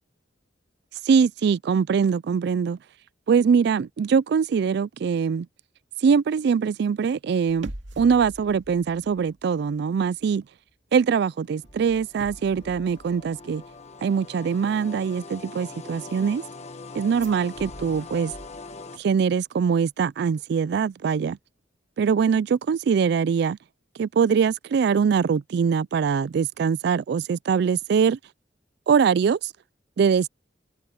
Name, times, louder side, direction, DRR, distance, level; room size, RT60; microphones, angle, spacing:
voice 1, 1.0-2.8 3.3-5.5 6.0-10.5 10.9-13.6 14.0-16.4 16.9-18.3 18.9-21.4 22.0-23.6 23.9-28.2 28.9-29.5 30.0-30.3, right 6 dB, 65° right, 0.3 m, -22 dB
sound 1, 7.5-9.8 10.0-10.3 11.6-13.9 17.1-19.0 19.3-19.4, right 1 dB, 80° right, 2.3 m, -44 dB
sound 2, 11.1-19.0, left 3 dB, 35° left, 1.3 m, -42 dB
head